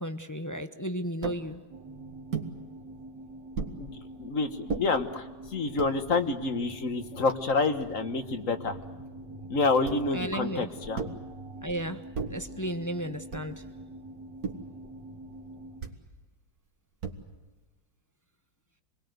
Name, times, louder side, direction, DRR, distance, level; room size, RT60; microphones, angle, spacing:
voice 1, 0.0-1.6 10.1-10.7 11.6-12.0 12.3-13.6, equal, 15° left, 8 dB, 0.6 m, -34 dB
sound 1, 1.2-1.5 2.3-2.5 3.5-3.8 4.7-4.9 5.6-6.0 6.7-6.8 7.0-8.0 9.8-10.2 10.9-11.3 12.1-12.5 13.3-13.7 14.4-14.8 15.8-16.1 17.0-17.5, right 5 dB, 60° right, 2.3 m, -36 dB
sound 2, 1.7-15.8, right 2 dB, 80° right, 3.1 m, -45 dB
voice 2, 4.2-5.2 5.5-8.7 9.5-11.0, left 3 dB, 50° left, 9 dB, 1.6 m, -28 dB
27.5 x 21.0 x 7.9 m, 1.3 s
omnidirectional pair, 1.9 m